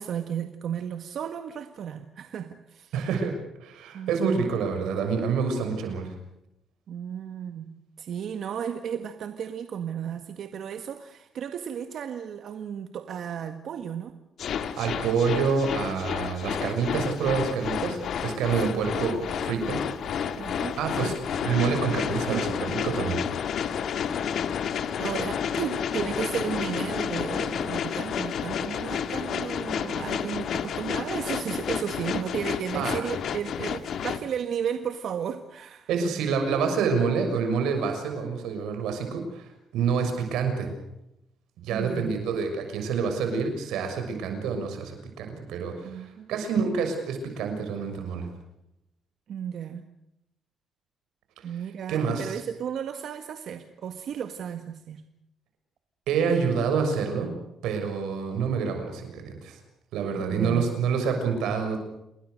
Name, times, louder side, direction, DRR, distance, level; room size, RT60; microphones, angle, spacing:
voice 1, 0.0-2.9 3.9-4.5 6.9-14.1 18.7-18.9 19.6-19.9 20.4-21.2 22.3-22.5 25.0-35.9 41.7-42.1 45.8-46.3 49.3-49.9 51.4-55.1 60.2-60.7, right 8 dB, 65° right, 7 dB, 1.8 m, -34 dB
voice 2, 2.9-3.3 3.6-6.1 14.6-19.8 20.8-21.2 21.4-23.2 32.7-33.0 35.9-40.7 41.6-48.3 51.9-52.4 56.1-57.3 57.6-59.6 59.9-61.8, right 5 dB, 90° right, 6 dB, 6.5 m, -27 dB
sound 1, 14.4-34.2, left 8 dB, 65° left, 1.9 m, -30 dB
29.0 x 21.0 x 6.6 m, 0.83 s
cardioid pair, 90°, 0 cm